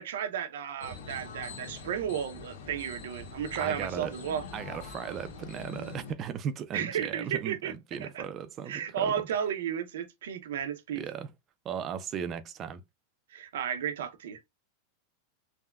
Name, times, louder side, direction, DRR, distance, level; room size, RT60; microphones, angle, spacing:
voice 1, 0.0-4.4 6.7-7.7 8.0-8.2 8.7-11.0 13.3-14.4, right 8 dB, 80° right, 0.6 m, -33 dB
sound 1, 0.8-6.1, left 5 dB, 80° left, 1.0 m, -44 dB
voice 2, 3.6-4.1 4.5-9.1 11.0-11.3 11.6-12.8, right 8 dB, 30° right, 0.4 m, -37 dB
3.4 x 2.1 x 2.3 m
supercardioid pair, 140°, 0 cm